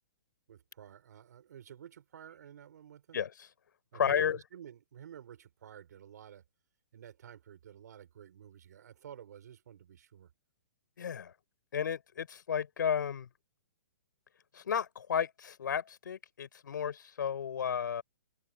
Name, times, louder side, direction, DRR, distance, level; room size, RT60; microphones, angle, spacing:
voice 1, 0.5-3.2 3.9-6.4 6.9-10.3, right 9 dB, 60° right, 5.0 m, -52 dB
voice 2, 3.9-4.4 11.0-11.3 11.7-13.3 14.5-18.0, left 8 dB, 70° left, 4.4 m, -33 dB
hypercardioid pair, 165°, 11 cm